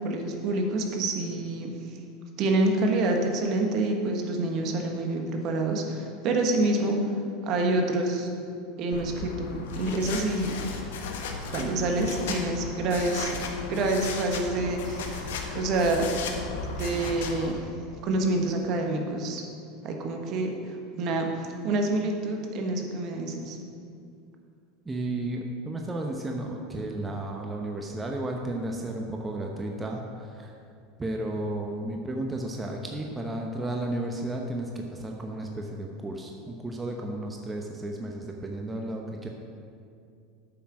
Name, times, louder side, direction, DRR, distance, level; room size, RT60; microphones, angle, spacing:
voice 1, 0.0-2.0 2.4-7.0 7.4-8.3 8.8-10.6 11.5-13.4 13.7-16.1 16.8-17.7 18.0-19.4 19.8-23.6, right 2 dB, 50° right, 2 dB, 1.4 m, -27 dB
sound 1, 8.9-17.5, left 4 dB, 75° left, 1.1 m, -35 dB
voice 2, 24.8-30.5 31.0-39.3, right 1 dB, 20° right, 1 dB, 0.9 m, -33 dB
8.5 x 5.9 x 6.1 m, 2.4 s
hypercardioid pair, 90°, 0 cm